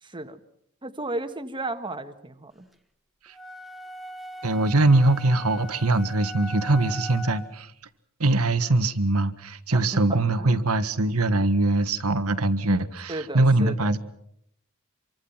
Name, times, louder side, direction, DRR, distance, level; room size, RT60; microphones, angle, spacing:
voice 1, 0.0-0.4 0.8-2.7 9.7-10.6 13.1-13.9, right 2 dB, 20° right, 8 dB, 1.6 m, -34 dB
sound 1, 3.3-7.6, equal, ahead, 1.3 m, -40 dB
voice 2, 4.4-7.7 8.2-14.0, right 2 dB, 85° right, 11 dB, 1.6 m, -22 dB
27.0 x 24.5 x 5.9 m, 0.74 s
head